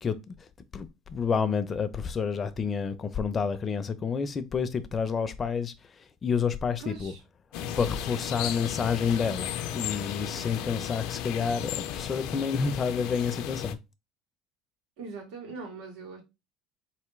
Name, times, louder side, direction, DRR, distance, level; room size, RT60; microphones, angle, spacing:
voice 1, 0.0-7.1 7.8-13.8, left 6 dB, 25° left, 0.6 m, -29 dB
voice 2, 6.8-7.2 15.0-16.2, right 4 dB, 85° right, 2.3 m, -41 dB
sound 1, 7.5-13.7, left 10 dB, 70° left, 0.5 m, -35 dB
4.3 x 3.4 x 3.1 m
cardioid pair, 130°, 0 cm